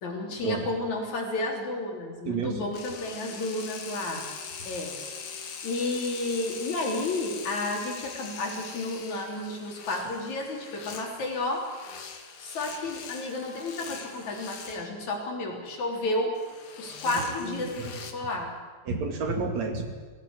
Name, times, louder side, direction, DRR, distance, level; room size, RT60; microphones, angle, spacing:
voice 1, 0.0-4.2 4.7-4.9 5.6-11.6 12.4-16.3 16.8-18.5, left 2 dB, 75° left, 0 dB, 5.0 m, -31 dB
voice 2, 2.3-2.8 4.6-4.7 17.0-17.9 18.9-19.8, right 4 dB, 65° right, 5 dB, 3.5 m, -31 dB
sound 1, 2.7-14.9 16.4-18.1, left 6 dB, 50° left, 2.3 m, -42 dB
19.5 x 16.5 x 9.7 m, 1.5 s
omnidirectional pair, 3.3 m